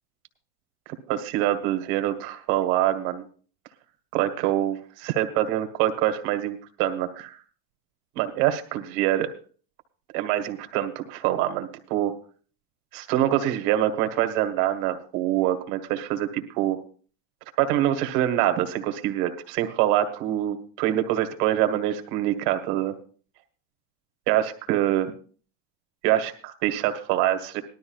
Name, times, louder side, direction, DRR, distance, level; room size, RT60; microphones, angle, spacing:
voice 1, 1.1-3.2 4.1-7.4 8.2-9.3 10.1-12.1 12.9-16.8 17.6-22.9 24.3-25.1 26.0-27.6, right 12 dB, 70° right, 8 dB, 1.7 m, -25 dB
19.0 x 12.5 x 2.4 m, 0.41 s
cardioid pair, 160°, 46 cm